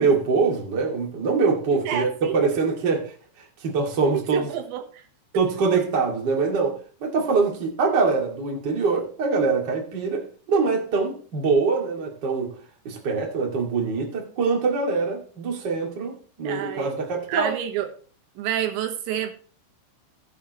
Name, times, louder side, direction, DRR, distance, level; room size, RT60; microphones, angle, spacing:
voice 1, 0.0-3.0 3.6-4.5 5.3-12.5 12.8-17.6, right 4 dB, 35° right, 2.0 m, -24 dB
voice 2, 1.7-2.4 4.3-5.0 16.5-16.9 17.3-17.9 18.4-19.3, right 10 dB, 80° right, 3.4 m, -28 dB
18.0 x 7.0 x 3.1 m
omnidirectional pair, 5.2 m